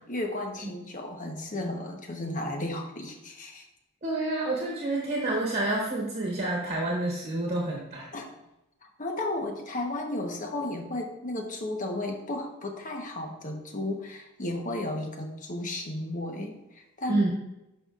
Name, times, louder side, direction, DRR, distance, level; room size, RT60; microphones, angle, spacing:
voice 1, 0.1-3.6 8.1-8.3 8.8-17.3, left 1 dB, 40° left, 3 dB, 1.1 m, -34 dB
voice 2, 4.0-8.0 17.1-17.3, right 2 dB, 30° right, -3 dB, 1.4 m, -28 dB
11.0 x 5.7 x 2.5 m, 0.90 s
head